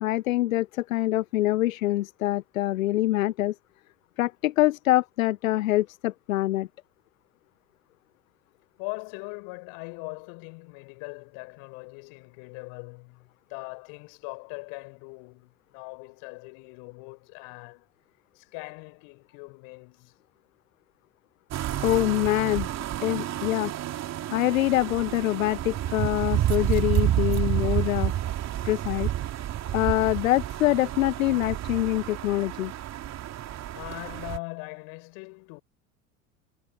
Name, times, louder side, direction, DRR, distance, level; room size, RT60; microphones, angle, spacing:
voice 1, 0.0-3.5 4.2-6.7 21.8-22.7 23.0-23.7 24.3-28.1 28.6-29.1 29.7-32.7, left 16 dB, 80° left, 0.5 m, -25 dB
voice 2, 8.8-17.9 18.3-20.1 33.7-35.6, left 37 dB, 60° left, 7.9 m, -41 dB
sound 1, 21.5-34.4, right 12 dB, 40° right, 3.1 m, -29 dB
hypercardioid pair, 75°, 40 cm